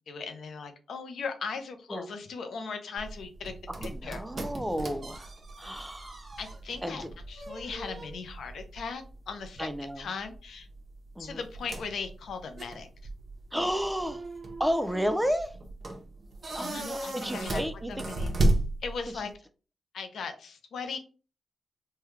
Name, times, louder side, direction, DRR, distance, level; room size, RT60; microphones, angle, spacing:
voice 1, 0.1-3.5 3.8-4.2 6.4-9.7 10.0-10.7 11.2-12.9 16.6-17.6 17.9-18.3 18.8-19.3 19.9-21.0, left 5 dB, 80° left, 0.5 m, -38 dB
sound 1, 3.0-19.3, right 2 dB, 45° right, 0.8 m, -35 dB
voice 2, 3.7-6.4 6.8-7.1 9.6-10.1 11.2-11.4 13.5-14.2 14.6-15.6 16.5-18.1, equal, 5° right, 0.4 m, -32 dB
3.3 x 2.2 x 3.1 m
cardioid pair, 70°, 0 cm